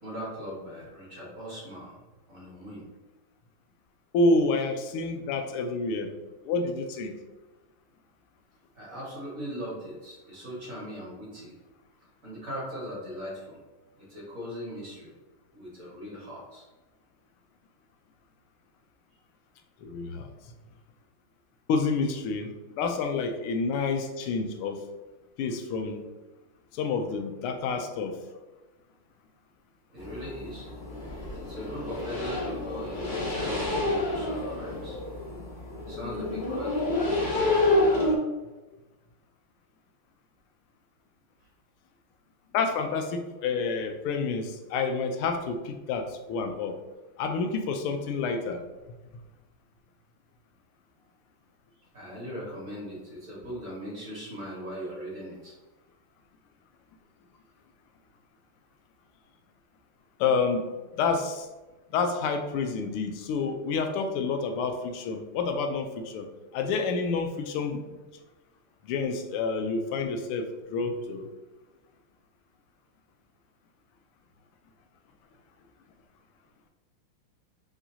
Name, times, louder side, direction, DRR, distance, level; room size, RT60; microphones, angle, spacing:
voice 1, 0.0-2.0 2.3-2.9 8.7-11.6 12.2-13.6 14.0-15.1 15.5-16.7 29.9-30.7 31.3-35.0 35.9-38.0 51.9-55.5, equal, 40° right, -6 dB, 1.8 m, -40 dB
voice 2, 4.1-6.2 6.4-7.1 19.8-20.3 21.7-24.8 25.4-26.0 26.7-28.2 42.5-46.7 47.2-48.6 60.2-60.6 60.9-61.5 61.9-66.3 66.5-67.8 68.8-71.3, left 4 dB, 90° left, 6 dB, 1.5 m, -28 dB
sound 1, 30.0-38.1, left 2 dB, 45° left, 0.6 m, -28 dB
4.9 x 3.7 x 2.7 m, 1.1 s
omnidirectional pair, 2.4 m